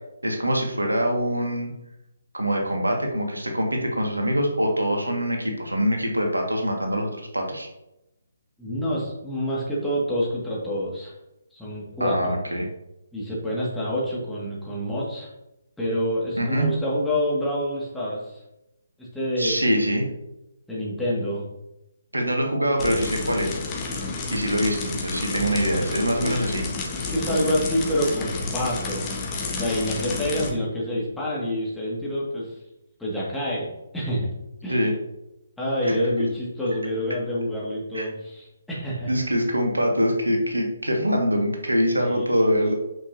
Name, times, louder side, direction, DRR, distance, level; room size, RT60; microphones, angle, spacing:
voice 1, 0.2-1.7 2.3-7.7 12.0-12.7 16.4-16.7 19.4-20.1 22.1-23.6 24.3-26.6 34.7-34.9 35.8-36.0 37.9-38.1 39.1-42.7, equal, 80° right, 1 dB, 1.8 m, -24 dB
voice 2, 8.6-11.1 11.5-12.3 13.1-15.3 15.8-18.4 19.0-19.9 20.7-21.5 25.4-25.6 26.2-26.3 26.9-32.6 33.0-33.7 33.9-34.3 34.6-34.9 35.6-39.1 42.0-42.5, equal, 5° left, -7 dB, 2.0 m, -27 dB
sound 1, 22.8-30.5, left 3 dB, 20° left, 1.3 m, -30 dB
8.6 x 6.7 x 2.8 m, 0.91 s
figure-of-eight pair, 140°, 0 cm